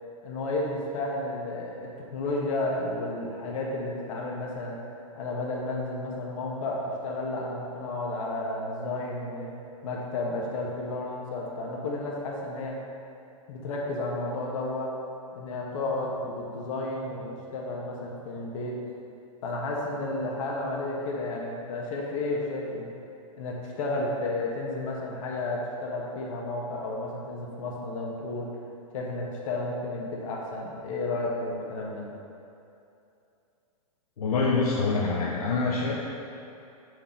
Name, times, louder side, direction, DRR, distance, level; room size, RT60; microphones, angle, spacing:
voice 1, 0.2-4.8 5.1-9.5 9.8-12.8 13.5-14.9 15.3-18.8 19.4-22.9 23.4-28.5 28.9-32.0, left 2 dB, 60° left, -2 dB, 1.4 m, -32 dB
voice 2, 34.2-35.9, left 4 dB, 85° left, -4 dB, 0.9 m, -25 dB
6.6 x 4.6 x 3.8 m, 2.7 s
hypercardioid pair, 125°, 19 cm